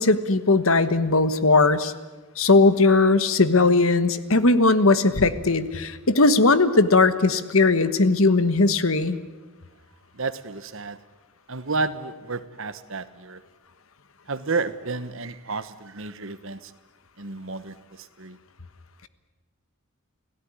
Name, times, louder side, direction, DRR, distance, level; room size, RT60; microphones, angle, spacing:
voice 1, 0.0-1.9 2.4-9.2, left 3 dB, 65° left, 12 dB, 1.3 m, -19 dB
voice 2, 10.2-11.0 11.5-13.4 14.3-16.7 17.2-18.4, right 3 dB, 60° right, 11 dB, 1.3 m, -31 dB
29.5 x 17.0 x 9.9 m, 1.3 s
head